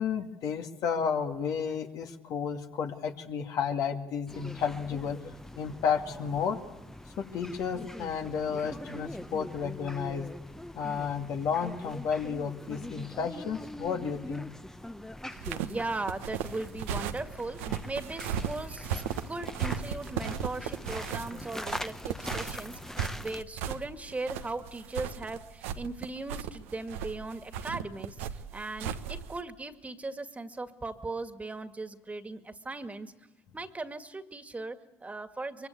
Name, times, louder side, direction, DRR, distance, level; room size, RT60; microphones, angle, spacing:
voice 1, 0.0-5.2 5.6-6.6 7.2-10.3 10.7-14.5, left 6 dB, 60° left, 3 dB, 2.2 m, -32 dB
sound 1, 4.3-23.4, left 1 dB, 5° left, 1.1 m, -43 dB
voice 2, 15.3-22.8 23.2-33.1 33.5-35.7, right 2 dB, 20° right, 8 dB, 2.1 m, -38 dB
sound 2, 15.3-29.4, right 8 dB, 80° right, 1.2 m, -36 dB
24.0 x 23.0 x 8.3 m, 1.0 s
hypercardioid pair, 55°, 7 cm